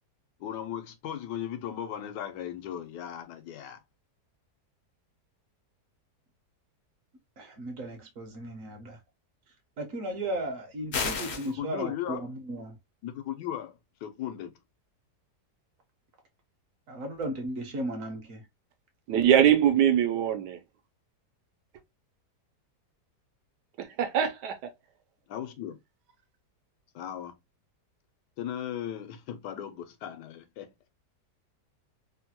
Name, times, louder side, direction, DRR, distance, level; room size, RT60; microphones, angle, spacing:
voice 1, 0.4-3.8 11.6-12.3 13.0-14.5 25.3-25.8 26.9-27.3 28.4-30.7, left 10 dB, 85° left, 1.2 m, -37 dB
voice 2, 7.4-9.0 9.8-12.8 16.9-18.4, right 1 dB, 60° right, 1.0 m, -35 dB
sound 1, 10.9-11.5, left 5 dB, 60° left, 0.7 m, -31 dB
voice 3, 19.1-20.6 24.0-24.5, right 10 dB, 80° right, 1.2 m, -22 dB
3.2 x 2.2 x 2.8 m
omnidirectional pair, 1.8 m